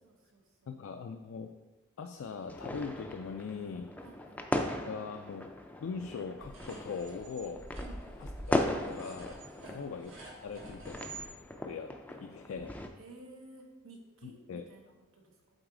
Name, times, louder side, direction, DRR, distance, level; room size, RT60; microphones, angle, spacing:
voice 1, 0.0-0.7 4.0-4.4 7.8-8.0 9.6-9.8 13.0-15.4, right 2 dB, 85° right, 1 dB, 1.2 m, -54 dB
voice 2, 0.7-1.5 2.0-3.9 4.9-5.5 5.8-7.6 8.2-10.1 10.4-11.1 11.6-12.8 14.2-14.6, left 5 dB, 75° left, 5 dB, 0.4 m, -41 dB
sound 1, 2.5-12.9, left 1 dB, 5° left, 0.4 m, -38 dB
sound 2, 6.4-11.3, right 2 dB, 70° right, 1.4 m, -47 dB
7.9 x 4.0 x 3.8 m, 1.2 s
head